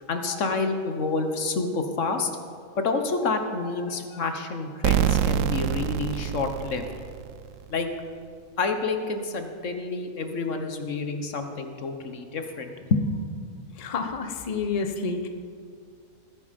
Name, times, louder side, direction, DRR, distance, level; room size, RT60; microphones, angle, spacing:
voice 1, 0.1-2.3 2.7-6.8 7.7-7.9 8.6-13.2, left 3 dB, 65° left, 6 dB, 1.4 m, -28 dB
sound 1, 4.8-7.5, right 10 dB, 75° right, 0.9 m, -25 dB
voice 2, 13.8-15.3, left 4 dB, 30° left, 6 dB, 0.9 m, -29 dB
20.5 x 9.3 x 5.2 m, 2.1 s
omnidirectional pair, 1.4 m